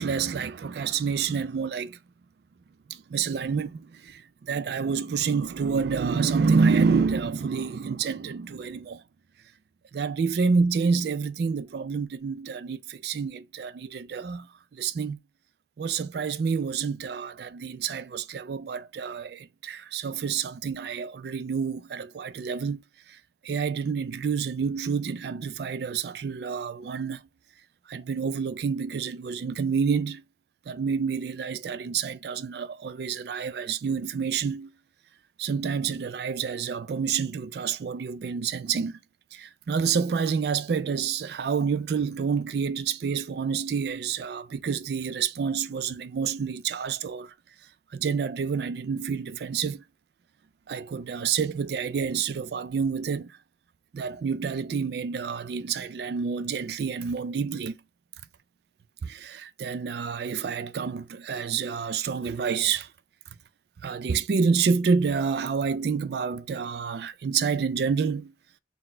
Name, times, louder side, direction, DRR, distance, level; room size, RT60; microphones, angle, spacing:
voice 1, 0.0-2.0 2.9-9.0 9.9-14.5 14.7-15.2 15.8-23.2 23.4-27.2 27.9-30.2 30.7-34.7 35.4-39.0 39.3-47.3 47.9-49.8 50.7-53.4 53.9-57.8 59.0-62.9 63.8-68.3, right 5 dB, 65° right, 0.3 m, -28 dB
4.0 x 2.1 x 4.2 m
head